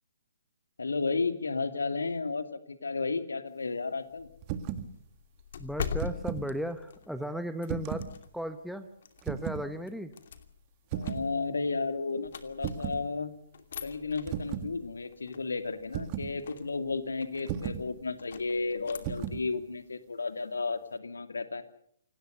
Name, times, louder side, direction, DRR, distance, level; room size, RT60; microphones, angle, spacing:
voice 1, 0.8-4.3 10.9-13.3 13.8-21.6, left 4 dB, 75° left, 9 dB, 2.5 m, -33 dB
sound 1, 4.1-8.5 9.0-13.2 13.5-19.4, left 7 dB, 55° left, 2.7 m, -44 dB
sound 2, 4.4-4.9 5.8-6.5 7.7-8.1 9.2-9.7 10.9-11.3 12.6-13.0 14.3-14.7 15.9-16.3 17.5-17.9 19.0-19.5, right 9 dB, 30° right, 1.9 m, -35 dB
voice 2, 5.6-8.1 8.3-8.9 9.2-10.1, equal, ahead, 9 dB, 1.0 m, -35 dB
28.5 x 19.0 x 6.8 m, 0.67 s
figure-of-eight pair, 130°, 0 cm